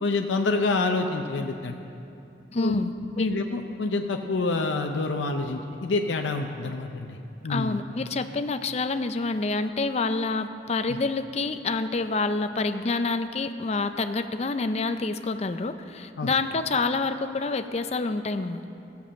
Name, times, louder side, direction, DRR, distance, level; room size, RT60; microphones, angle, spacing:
voice 1, 0.0-1.8 2.6-2.8 3.2-7.2 7.4-7.8 10.9-11.0 16.2-16.3, left 3 dB, 80° left, 3 dB, 0.6 m, -27 dB
voice 2, 2.5-3.3 7.5-18.6, left 3 dB, 35° left, 9 dB, 0.4 m, -27 dB
14.0 x 7.0 x 7.5 m, 2.7 s
head